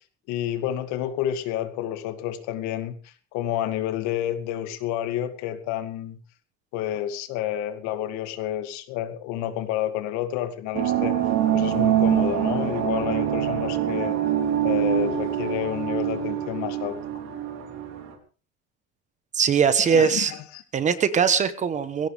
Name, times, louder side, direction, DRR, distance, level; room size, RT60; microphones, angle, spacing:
voice 1, 0.3-6.2 6.7-11.2 11.5-14.2 14.6-17.0 19.8-20.6, left 11 dB, 70° left, 9 dB, 2.4 m, -29 dB
sound 1, 10.7-18.1, right 11 dB, 60° right, 3.9 m, -25 dB
voice 2, 19.3-20.3 20.7-22.1, right 6 dB, 25° right, 12 dB, 1.1 m, -21 dB
21.5 x 17.0 x 3.5 m, 0.38 s
cardioid pair, 175°, 30 cm